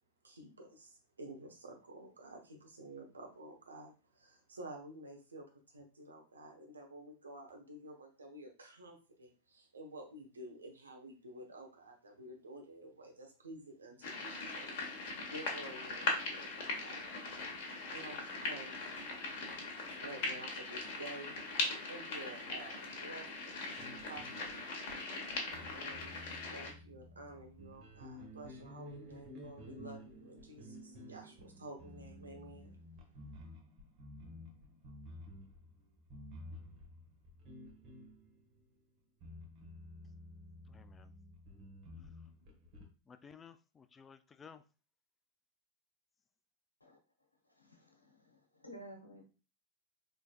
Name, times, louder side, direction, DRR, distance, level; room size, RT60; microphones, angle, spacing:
voice 1, 0.2-15.0 15.3-17.0 17.9-18.8 20.0-25.0 25.7-32.9, right 1 dB, 75° right, 1.0 m, -51 dB
sound 1, 14.0-26.7, left 3 dB, 50° left, 1.1 m, -40 dB
sound 2, 23.8-38.7 39.2-42.8, left 1 dB, 35° right, 1.1 m, -52 dB
voice 2, 40.7-41.1 43.1-44.6, left 6 dB, 20° left, 0.3 m, -56 dB
voice 3, 47.5-49.2, equal, 85° left, 0.9 m, -53 dB
4.6 x 3.1 x 2.4 m
figure-of-eight pair, 90°, 0 cm